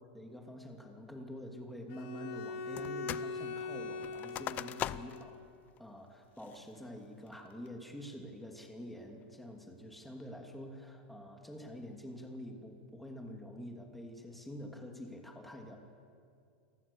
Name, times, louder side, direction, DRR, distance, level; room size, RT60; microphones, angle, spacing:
voice 1, 0.0-5.4 5.8-15.8, equal, ahead, 2 dB, 2.7 m, -47 dB
Bowed string instrument, 1.9-5.4, left 3 dB, 55° left, 3.3 m, -42 dB
sound 1, 2.8-3.3 3.6-5.3 5.8-5.9 6.4-6.8 7.3-7.7, left 12 dB, 30° left, 0.6 m, -40 dB
29.0 x 19.0 x 7.2 m, 2.4 s
supercardioid pair, 145°, 5 cm